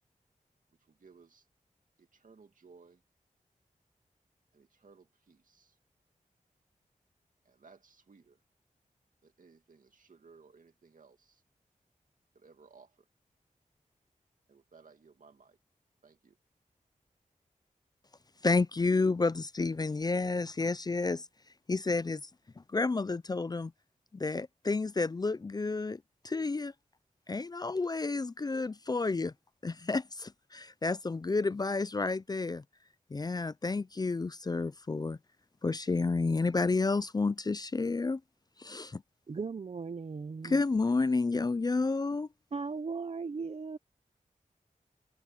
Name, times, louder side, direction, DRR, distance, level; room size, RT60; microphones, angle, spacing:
voice 1, 0.9-1.4 2.0-3.0 4.5-5.8 7.5-8.4 9.2-11.4 12.3-13.1 14.5-15.6 16.0-16.4, right 5 dB, 75° right, 2.4 m, -59 dB
voice 2, 18.4-21.3 21.7-22.3 22.6-23.7 24.1-26.7 27.3-29.3 29.6-32.6 33.1-35.2 35.6-38.2 38.6-39.0 40.4-42.3, left 3 dB, 30° left, 0.4 m, -30 dB
voice 3, 39.3-40.6 42.5-43.8, right 4 dB, 50° right, 0.6 m, -37 dB
wide cardioid pair, 105°, 14 cm